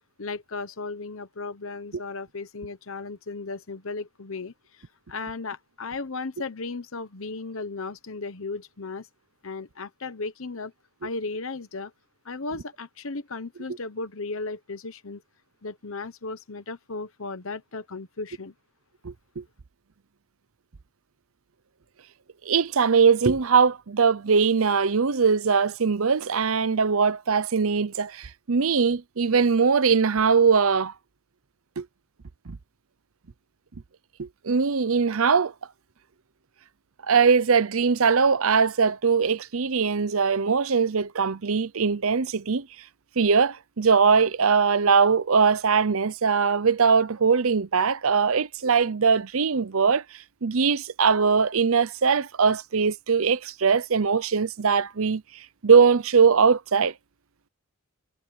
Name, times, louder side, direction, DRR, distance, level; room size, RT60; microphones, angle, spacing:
voice 1, 0.2-9.1 9.4-10.7 11.0-11.9 12.2-15.2 15.6-18.5, left 3 dB, 65° left, 1.1 m, -35 dB
voice 2, 19.0-19.4 22.4-30.9 31.8-31.9 32.5-32.6 34.2-35.5 37.1-42.7 43.2-50.0 50.4-56.9, right 5 dB, 70° right, 0.7 m, -21 dB
head